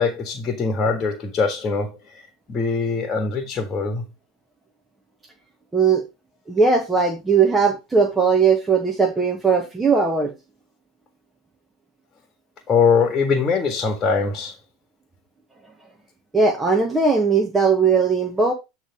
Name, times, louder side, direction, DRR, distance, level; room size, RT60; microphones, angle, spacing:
voice 1, 0.0-2.0 2.5-4.0 12.7-14.5, left 5 dB, 30° left, 1.6 m, -22 dB
voice 2, 5.7-6.0 6.5-10.3 16.3-18.5, right 5 dB, 15° right, 1.2 m, -19 dB
8.6 x 3.3 x 4.8 m
hypercardioid pair, 85°, 0 cm